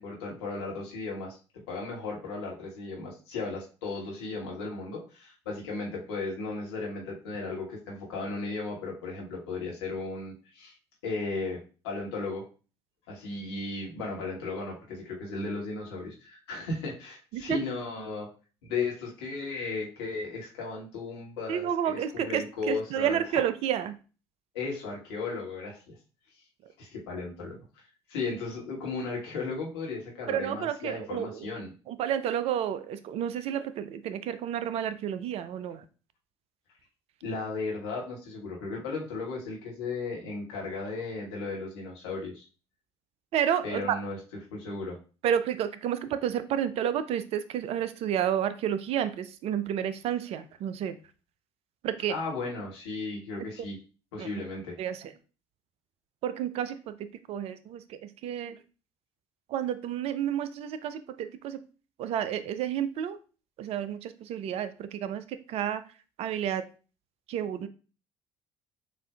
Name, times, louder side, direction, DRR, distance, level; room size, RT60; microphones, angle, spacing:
voice 1, 0.0-1.4 1.7-10.7 11.0-12.4 13.1-18.3 18.6-23.4 24.5-26.0 26.8-31.7 37.2-42.5 43.6-44.2 44.5-45.0 52.1-53.8 54.1-54.8, left 3 dB, 70° left, -2 dB, 1.3 m, -35 dB
voice 2, 21.5-24.0 30.3-31.4 31.9-35.8 43.3-44.0 45.2-51.0 51.8-52.1 54.2-54.3 54.8-55.1 56.2-57.0 57.3-58.6 59.5-61.6 62.0-63.2 63.6-65.8 66.2-66.6 67.3-67.7, right 9 dB, 45° right, 12 dB, 0.4 m, -30 dB
6.6 x 2.5 x 2.3 m, 0.35 s
figure-of-eight pair, 55°, 14 cm